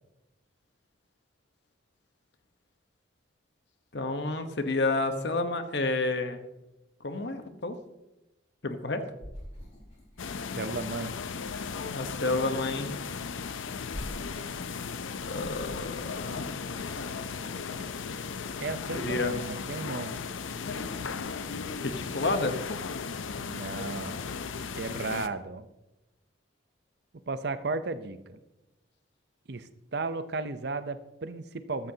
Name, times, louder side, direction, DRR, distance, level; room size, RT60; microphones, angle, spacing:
voice 1, 3.9-6.4 7.0-7.8 8.6-9.0 11.9-13.0 15.3-16.5 18.9-19.5 21.8-22.6, left 2 dB, 60° left, 8 dB, 1.0 m, -30 dB
sound 1, 9.2-19.6 19.8-21.4 21.7-22.4, equal, 35° left, 5.1 m, -48 dB
sound 2, 10.2-25.3, left 5 dB, 85° left, 0.6 m, -36 dB
voice 2, 10.6-11.1 18.6-20.2 23.4-24.2 24.7-25.7 27.3-28.4 29.5-31.9, right 3 dB, 55° right, 12 dB, 0.7 m, -34 dB
sound 3, 16.1-24.5, left 1 dB, 15° left, 4.1 m, -55 dB
14.0 x 13.5 x 2.8 m, 0.96 s
head